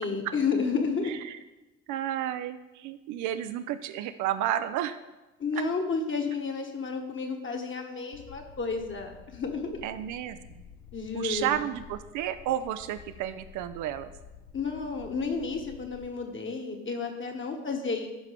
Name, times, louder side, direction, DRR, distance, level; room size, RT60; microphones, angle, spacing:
voice 1, 0.0-1.1 5.4-9.8 10.9-11.6 14.5-18.1, left 4 dB, 30° left, 3 dB, 1.6 m, -31 dB
voice 2, 1.1-1.4 1.9-5.0 9.8-10.4 11.1-14.1, right 11 dB, 55° right, 10 dB, 0.5 m, -31 dB
sound 1, 8.1-16.1, left 6 dB, 50° left, 0.9 m, -50 dB
14.0 x 5.8 x 3.5 m, 1.1 s
figure-of-eight pair, 50°, 37 cm